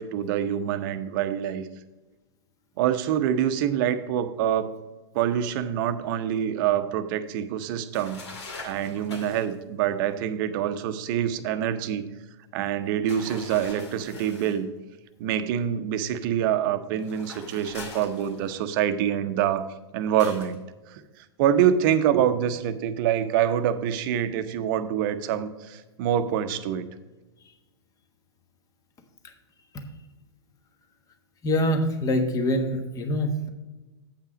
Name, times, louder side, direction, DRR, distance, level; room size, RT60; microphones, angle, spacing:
voice 1, 0.0-1.7 2.8-4.7 5.1-8.2 8.6-12.0 12.5-14.7 15.2-19.7 19.9-20.6 20.9-26.8, right 9 dB, 50° right, 10 dB, 0.8 m, -26 dB
sound 1, 7.9-9.5 13.1-14.6 17.0-18.7 20.2-20.6, left 3 dB, 80° left, 2.2 m, -43 dB
voice 2, 31.4-33.5, left 1 dB, 25° left, 6 dB, 1.3 m, -24 dB
8.5 x 5.6 x 5.0 m, 1.1 s
hypercardioid pair, 115°, 14 cm